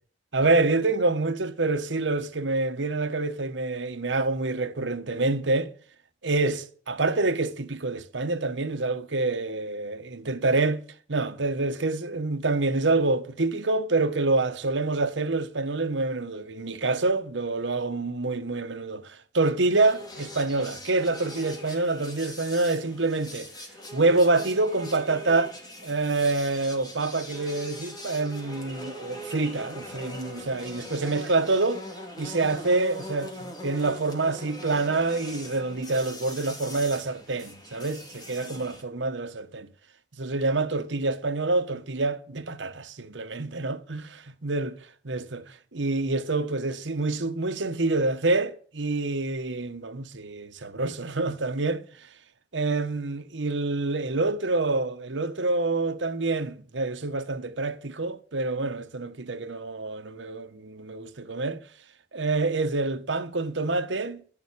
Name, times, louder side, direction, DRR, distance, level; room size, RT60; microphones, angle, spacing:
voice 1, 0.3-5.7 6.2-10.8 11.1-23.5 23.9-25.5 25.8-31.8 32.2-39.7 40.2-44.8 45.0-51.8 52.5-61.6 62.1-64.2, right 3 dB, 80° right, 1.2 m, -27 dB
sound 1, 19.7-38.8, left 1 dB, 20° left, 2.7 m, -42 dB
12.0 x 7.2 x 8.5 m
head